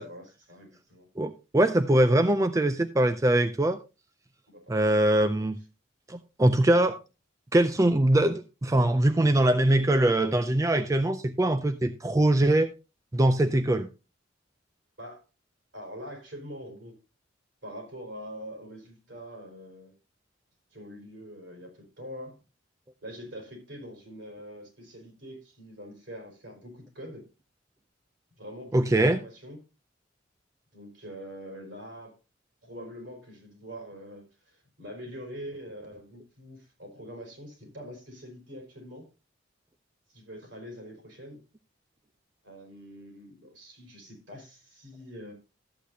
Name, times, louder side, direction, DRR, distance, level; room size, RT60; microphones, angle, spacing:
voice 1, 0.0-1.1 4.5-5.0 15.0-15.2 15.7-17.0 17.6-20.0 20.7-22.4 23.0-27.3 28.4-29.6 30.7-32.2 32.6-39.1 40.1-41.4 42.4-45.3, equal, 65° right, 4.8 m, -44 dB
voice 2, 1.2-3.8 4.7-5.6 6.1-7.0 7.5-12.7 13.1-13.9 28.7-29.2, right 1 dB, 15° right, 0.4 m, -22 dB
13.5 x 8.3 x 2.7 m
head